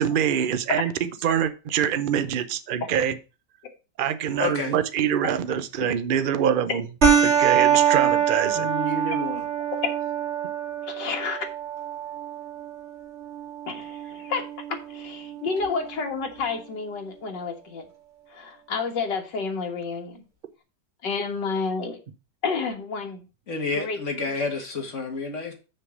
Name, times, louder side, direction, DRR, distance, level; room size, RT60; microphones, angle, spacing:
voice 1, 0.0-3.2 4.0-6.8 7.2-8.7, right 9 dB, 65° right, 12 dB, 0.5 m, -25 dB
voice 2, 4.4-4.8 8.5-9.4 23.5-25.5, left 3 dB, 45° left, 3 dB, 2.1 m, -29 dB
sound 1, 7.0-16.0, right 8 dB, 35° right, 2.5 m, -25 dB
voice 3, 10.8-11.5 13.7-17.8 18.3-20.2 21.0-22.0 22.4-23.3 23.8-24.0, left 4 dB, 75° left, 3 dB, 2.3 m, -30 dB
6.5 x 5.6 x 6.3 m, 0.32 s
omnidirectional pair, 1.9 m